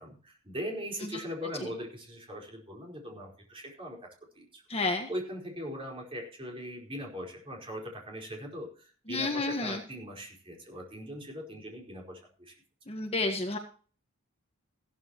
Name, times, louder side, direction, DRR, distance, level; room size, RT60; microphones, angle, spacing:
voice 1, 0.0-4.6 5.1-12.5, equal, 25° right, -1 dB, 4.7 m, -40 dB
voice 2, 4.7-5.1 9.1-9.8 12.9-13.6, left 2 dB, 25° left, 4 dB, 1.5 m, -30 dB
15.5 x 13.0 x 3.0 m, 0.41 s
head